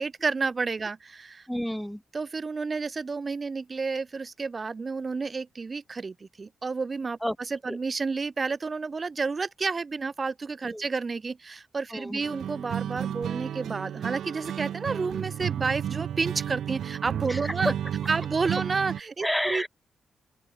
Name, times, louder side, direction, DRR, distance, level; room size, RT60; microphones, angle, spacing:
voice 1, 0.0-1.5 2.1-7.2 7.5-17.7 18.1-19.7, right 4 dB, 30° right, 4.4 m, -30 dB
voice 2, 1.5-2.0 7.2-7.4 7.7-7.8 10.7-10.8 11.9-12.3 17.3-17.7 19.2-19.7, equal, ahead, 3.5 m, -30 dB
sound 1, 12.2-19.0, right 10 dB, 75° right, 6.2 m, -32 dB
open air
wide cardioid pair, 145°, 0 cm